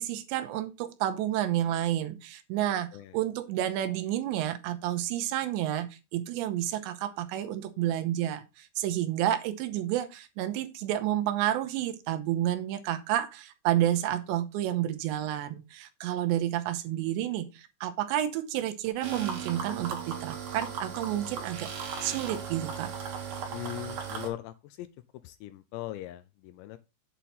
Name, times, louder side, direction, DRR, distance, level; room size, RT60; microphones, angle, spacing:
voice 1, 0.0-21.7 22.0-22.9, right 12 dB, 80° right, 3.0 m, -30 dB
sound 1, 19.0-24.3, right 6 dB, 55° right, 3.1 m, -37 dB
voice 2, 23.5-24.9 25.2-26.8, left 15 dB, 80° left, 2.6 m, -40 dB
8.2 x 4.5 x 5.6 m
omnidirectional pair, 5.3 m